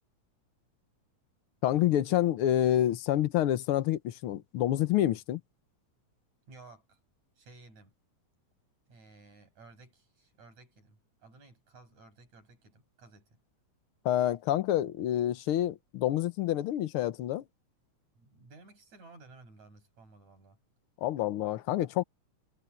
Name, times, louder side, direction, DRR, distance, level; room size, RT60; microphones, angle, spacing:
voice 1, 1.6-5.4 14.0-17.4 21.0-22.0, left 12 dB, 70° left, 1.4 m, -28 dB
voice 2, 6.5-7.0 7.4-7.9 8.9-13.4 18.2-20.6, right 3 dB, 65° right, 8.8 m, -55 dB
omnidirectional pair, 3.4 m